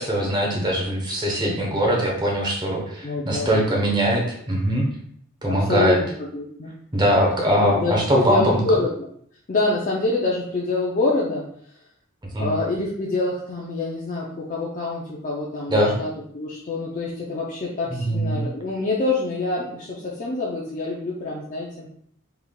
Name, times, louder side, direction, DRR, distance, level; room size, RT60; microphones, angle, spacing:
voice 1, 0.0-4.9 5.4-6.0 6.9-8.6 12.3-12.5 15.7-15.9 17.9-18.5, equal, 20° right, -2 dB, 0.9 m, -21 dB
voice 2, 3.0-3.9 5.5-6.1 6.3-6.7 7.5-8.9 9.5-11.4 12.4-21.9, left 2 dB, 35° left, -4 dB, 0.5 m, -26 dB
3.8 x 3.3 x 2.2 m, 0.64 s
head